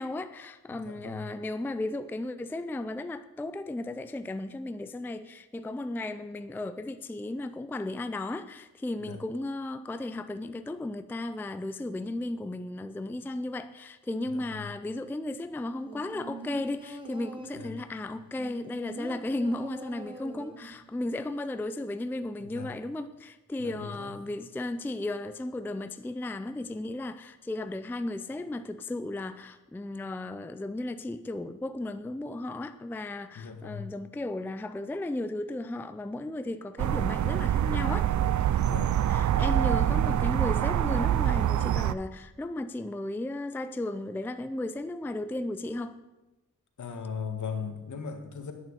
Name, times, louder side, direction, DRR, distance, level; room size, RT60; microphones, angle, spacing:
voice 1, 0.0-38.1 39.1-46.0, left 2 dB, 5° left, 0.4 m, -35 dB
voice 2, 0.7-1.3 9.1-9.2 14.3-14.7 17.6-17.8 22.4-22.7 23.6-24.2 33.3-33.9 38.6-39.0 46.8-48.5, left 6 dB, 65° left, 1.7 m, -38 dB
sound 1, 15.9-17.8 18.4-20.8 21.1-21.2, right 2 dB, 15° right, 1.4 m, -42 dB
sound 2, 36.8-42.0, right 11 dB, 65° right, 0.5 m, -25 dB
10.5 x 8.9 x 8.0 m
wide cardioid pair, 145°, 32 cm